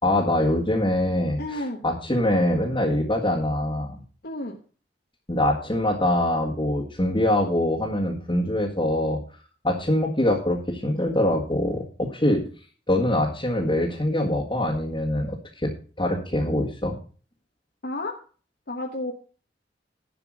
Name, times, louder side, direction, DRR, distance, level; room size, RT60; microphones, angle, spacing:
voice 1, 0.0-4.0 5.3-9.2 9.6-12.4 12.9-15.7 16.0-17.0, left 1 dB, 25° left, -3 dB, 1.7 m, -24 dB
voice 2, 1.4-1.8 4.2-4.6 17.8-18.2 18.7-19.1, left 1 dB, 60° left, 1 dB, 1.2 m, -31 dB
11.5 x 6.0 x 6.2 m, 0.40 s
head